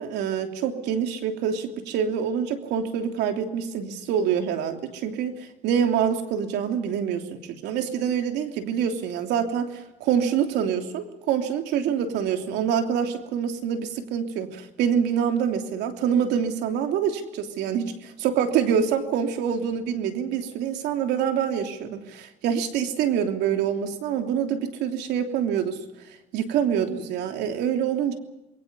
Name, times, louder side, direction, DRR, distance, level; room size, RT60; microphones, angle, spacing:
voice 1, 0.0-5.3 5.6-25.8 26.3-28.1, right 8 dB, 85° right, 5 dB, 3.1 m, -26 dB
28.0 x 22.5 x 5.4 m, 0.95 s
cardioid pair, 110°, 17 cm